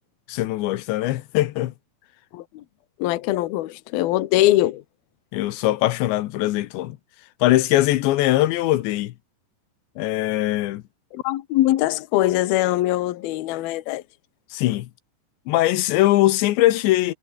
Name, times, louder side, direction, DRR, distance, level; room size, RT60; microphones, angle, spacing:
voice 1, 0.3-1.7 5.3-7.0 7.4-9.1 10.0-10.8 14.5-14.9 15.5-17.1, left 16 dB, 85° left, 3.4 m, -21 dB
voice 2, 2.3-2.6 3.0-4.8 11.1-14.0, left 15 dB, 70° left, 2.8 m, -22 dB
omnidirectional pair, 5.0 m